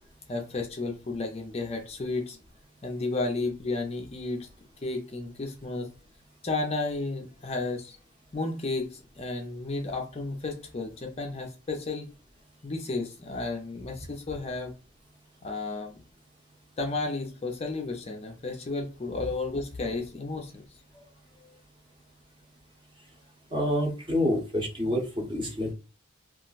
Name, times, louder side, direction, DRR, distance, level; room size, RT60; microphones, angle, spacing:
voice 1, 0.3-2.4 2.8-4.5 4.8-5.9 6.4-8.0 8.3-12.1 12.6-14.7 15.4-16.0 16.8-20.6 20.9-21.1, left 3 dB, 30° left, 0.4 m, -32 dB
voice 2, 23.5-25.7, left 1 dB, 25° right, 0.8 m, -27 dB
2.4 x 2.1 x 3.9 m
head